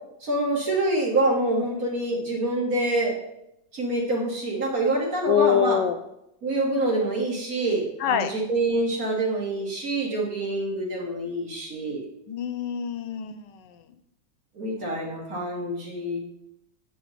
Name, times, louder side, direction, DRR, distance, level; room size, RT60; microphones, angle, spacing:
voice 1, 0.2-3.2 3.7-5.8 6.4-12.0 14.6-16.2, right 2 dB, 55° right, -2 dB, 2.4 m, -26 dB
voice 2, 5.2-6.0 8.0-8.3 12.3-13.8, left 9 dB, 85° left, 11 dB, 1.3 m, -25 dB
8.5 x 5.8 x 4.2 m, 0.82 s
omnidirectional pair, 1.9 m